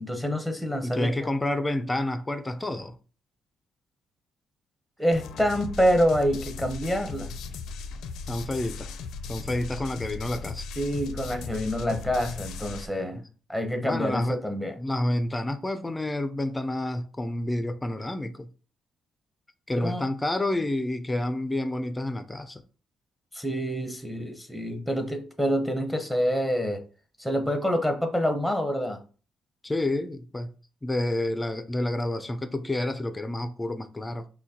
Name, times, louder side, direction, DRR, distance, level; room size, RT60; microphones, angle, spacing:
voice 1, 0.0-1.1 5.0-7.3 10.8-13.2 13.5-14.7 19.8-20.0 23.3-26.8 27.2-29.0, equal, ahead, 0.9 m, -27 dB
voice 2, 0.8-2.9 8.3-8.9 9.3-10.7 13.1-13.2 13.8-14.4 14.8-18.5 19.7-22.6 29.6-30.5 30.8-34.3, left 1 dB, 15° left, 0.4 m, -29 dB
sound 1, 5.1-12.9, left 4 dB, 80° left, 0.4 m, -37 dB
6.0 x 2.2 x 2.8 m
cardioid pair, 90°, 0 cm